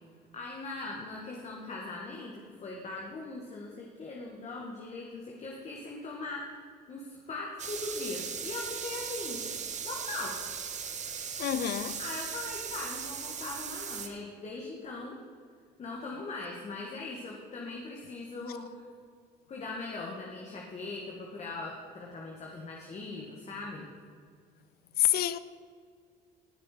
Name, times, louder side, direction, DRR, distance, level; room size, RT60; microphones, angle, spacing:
voice 1, 0.3-6.6 6.9-9.4 9.8-10.4 12.0-15.2 15.8-18.9 19.5-23.9, left 3 dB, 40° left, 2.0 m, -40 dB
sound 1, 7.6-14.1, right 7 dB, 45° right, 1.3 m, -38 dB
voice 2, 11.4-12.0 25.0-25.4, left 13 dB, 65° left, 0.7 m, -27 dB
19.5 x 6.9 x 5.2 m
cardioid pair, 110°, 17 cm